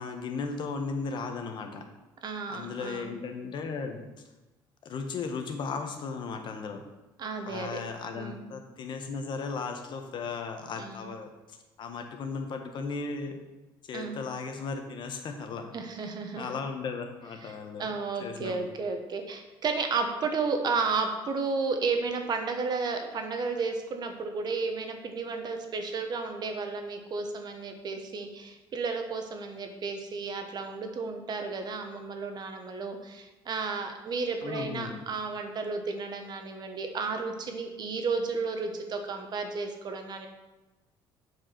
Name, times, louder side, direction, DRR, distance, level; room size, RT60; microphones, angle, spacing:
voice 1, 0.0-1.8 2.5-4.0 4.8-6.8 7.4-13.4 13.8-15.7 16.3-17.9 18.2-18.7 34.4-35.0, left 4 dB, 50° left, 5 dB, 1.2 m, -36 dB
voice 2, 2.2-3.1 7.2-7.8 8.2-8.5 10.8-11.1 13.9-14.2 15.7-16.5 17.4-17.5 17.8-40.3, right 4 dB, 45° right, 5 dB, 1.3 m, -33 dB
7.6 x 4.8 x 5.9 m, 1.1 s
cardioid pair, 100°, 10 cm